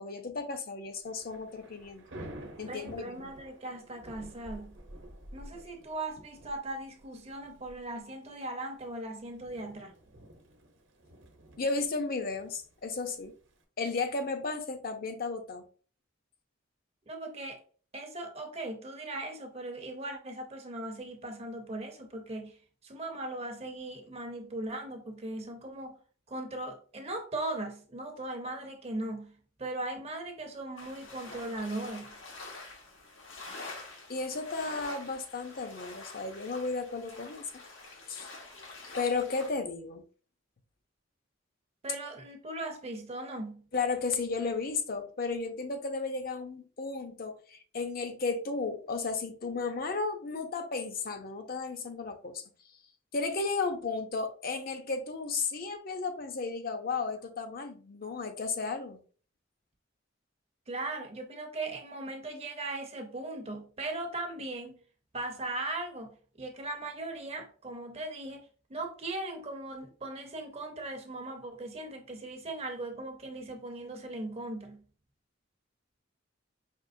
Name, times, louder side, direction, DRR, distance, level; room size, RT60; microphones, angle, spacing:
voice 1, 0.0-2.1 2.6-3.3 11.6-13.3 13.8-15.7 34.1-37.5 38.1-38.3 39.0-40.0 43.7-52.4 53.1-59.0, left 4 dB, 50° left, 0.6 m, -34 dB
Thunder / Rain, 1.0-13.6, right 1 dB, 70° right, 0.9 m, -51 dB
voice 2, 2.7-4.8 5.3-9.9 17.1-17.6 17.9-22.6 22.8-26.0 26.3-29.3 29.6-32.2 41.8-43.6 60.7-64.8 65.1-74.8, right 2 dB, 30° right, 0.6 m, -38 dB
sound 1, 30.8-39.5, left 3 dB, 85° left, 1.3 m, -46 dB
5.2 x 2.9 x 2.6 m
head